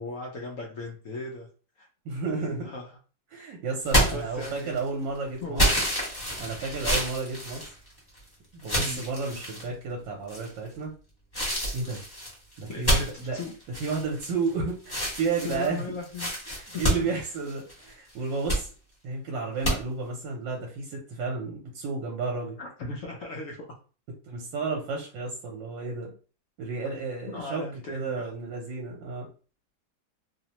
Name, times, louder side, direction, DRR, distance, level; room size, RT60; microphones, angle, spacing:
voice 1, 0.0-1.5 1.8-1.9 2.3-2.9 4.1-4.9 5.4-5.7 8.8-9.0 12.7-13.5 15.4-16.3 16.7-17.1 22.6-23.6 27.3-28.3, left 2 dB, 70° left, -1 dB, 0.7 m, -37 dB
voice 2, 2.0-2.7 3.3-5.6 6.4-7.7 8.5-10.9 11.7-12.0 12.6-13.4 13.8-15.8 16.5-18.7 19.0-22.6 24.3-26.1 26.6-29.3, right 4 dB, 80° right, 0 dB, 1.3 m, -32 dB
sound 1, 3.9-4.9 5.6-8.2 8.6-9.7 10.3-10.7 11.3-14.5 14.8-17.8 18.2-18.6 19.6-19.8, equal, 15° left, 0.8 m, -28 dB
3.1 x 2.0 x 2.8 m, 0.37 s
omnidirectional pair, 2.0 m